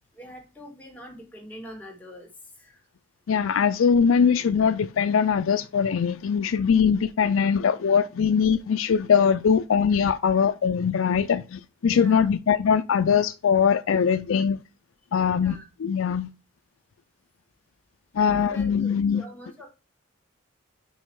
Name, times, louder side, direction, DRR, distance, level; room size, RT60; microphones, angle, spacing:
voice 1, 0.1-2.3 2.6-2.8 11.9-12.3 15.4-15.6 18.3-19.7, equal, 10° left, 2.1 m, -44 dB
voice 2, 3.3-14.6 15.1-16.3 18.1-19.2, left 6 dB, 80° left, 0.4 m, -22 dB
5.5 x 5.0 x 4.6 m
head